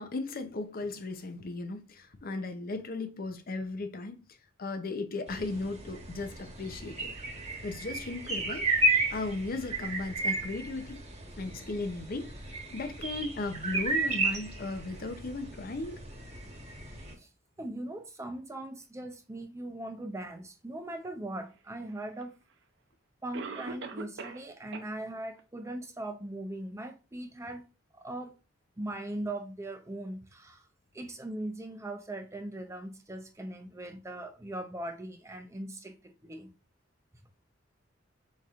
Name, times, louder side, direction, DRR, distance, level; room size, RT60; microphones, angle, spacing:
voice 1, 0.0-4.2 4.6-7.1 7.6-8.7 9.1-11.0 11.4-16.0, left 3 dB, 50° left, 0.6 m, -36 dB
sound 1, 5.3-17.1, right 2 dB, 35° right, 1.1 m, -33 dB
voice 2, 17.6-22.3 23.2-27.6 27.9-28.3 28.8-30.6 30.9-36.5, right 1 dB, 15° right, 0.6 m, -40 dB
Cough, 22.2-22.3 23.3-24.5 24.7-24.8 25.4-25.5 26.0-26.1, right 4 dB, 65° right, 0.6 m, -40 dB
4.9 x 4.2 x 2.4 m
head